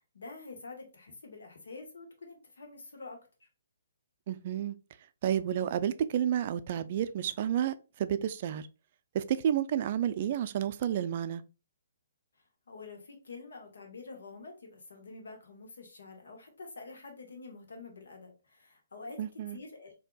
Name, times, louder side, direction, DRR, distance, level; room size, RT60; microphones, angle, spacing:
voice 1, 0.0-3.5 12.7-19.2 19.5-20.0, left 3 dB, 75° left, 1.2 m, -47 dB
voice 2, 4.3-4.7 5.2-8.6 9.1-11.4 19.2-19.6, right 10 dB, 45° right, 0.3 m, -30 dB
4.4 x 2.7 x 2.2 m
hypercardioid pair, 135°, 0 cm